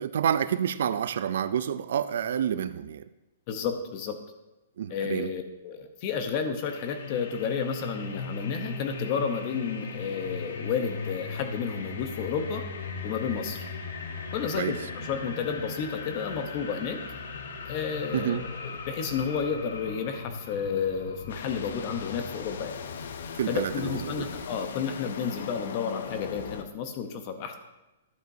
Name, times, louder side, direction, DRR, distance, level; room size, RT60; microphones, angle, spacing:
voice 1, 0.0-3.0 4.8-5.3 14.6-14.7 18.1-18.4 23.4-24.2, right 9 dB, 60° right, 14 dB, 0.4 m, -28 dB
voice 2, 3.5-4.2 4.9-12.6 13.0-13.7 14.3-17.0 17.7-22.8 23.5-27.5, left 6 dB, 30° left, 7 dB, 0.8 m, -31 dB
sound 1, 6.6-24.5, left 4 dB, 80° left, 1.1 m, -38 dB
sound 2, 21.3-26.6, left 6 dB, 65° left, 0.6 m, -39 dB
11.5 x 7.8 x 2.7 m, 1.0 s
hypercardioid pair, 175°, 0 cm